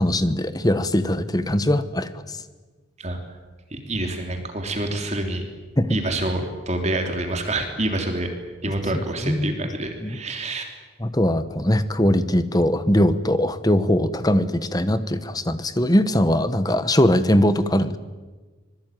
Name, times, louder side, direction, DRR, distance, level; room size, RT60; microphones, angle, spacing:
voice 1, 0.0-2.4 5.8-6.0 8.9-9.5 10.0-10.2 11.0-18.0, left 1 dB, 20° left, 12 dB, 1.3 m, -21 dB
voice 2, 3.7-5.4 5.9-8.3 8.6-10.7, right 1 dB, 35° right, 4 dB, 3.2 m, -27 dB
25.5 x 21.5 x 9.3 m, 1.3 s
head